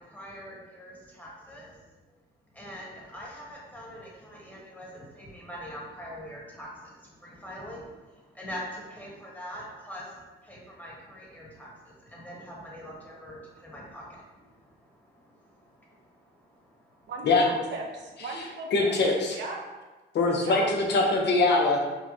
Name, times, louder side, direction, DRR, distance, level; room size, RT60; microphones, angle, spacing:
voice 1, 0.0-2.0 2.5-17.1, equal, 10° left, -4 dB, 1.3 m, -44 dB
voice 2, 17.1-18.9 19.3-19.6 20.4-20.7, right 3 dB, 65° right, 1 dB, 0.8 m, -37 dB
voice 3, 18.7-19.4 20.1-21.8, left 3 dB, 60° left, 0 dB, 0.8 m, -22 dB
5.4 x 2.2 x 2.8 m, 1.2 s
cardioid pair, 90°, 20 cm